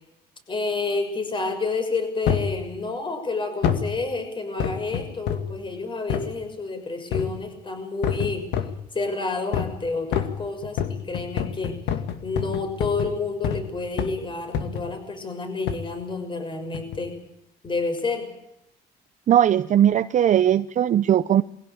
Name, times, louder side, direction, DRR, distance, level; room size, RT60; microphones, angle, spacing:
voice 1, 0.5-8.5 8.9-11.8 12.2-17.2 17.6-18.3, left 3 dB, 30° left, 7 dB, 6.3 m, -29 dB
sound 1, 2.3-2.6 3.6-3.9 4.6-5.6 6.1-6.3 7.1-7.5 8.0-8.8 9.5-9.8 10.1-13.7 14.0-14.2 14.5-14.9 15.7-15.9 16.7-17.1 17.6-17.7, left 8 dB, 85° left, 2.3 m, -27 dB
voice 2, 19.3-21.4, right 10 dB, 45° right, 12 dB, 0.7 m, -19 dB
22.0 x 16.5 x 8.9 m, 0.80 s
cardioid pair, 110°, 17 cm